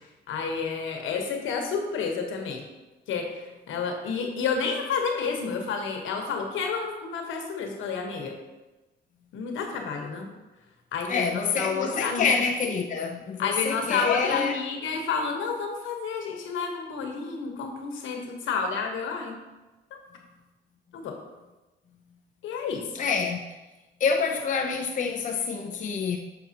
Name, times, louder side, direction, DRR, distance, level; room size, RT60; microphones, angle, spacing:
voice 1, 0.3-2.6 3.1-8.3 9.3-10.3 10.9-12.3 13.4-19.3 20.9-21.2 22.4-22.8, left 5 dB, 80° left, 2 dB, 1.2 m, -30 dB
voice 2, 11.1-14.6 22.9-23.4 24.0-26.2, left 5 dB, 40° left, 2 dB, 0.6 m, -27 dB
6.6 x 6.2 x 2.8 m, 1.1 s
cardioid pair, 90°, 20 cm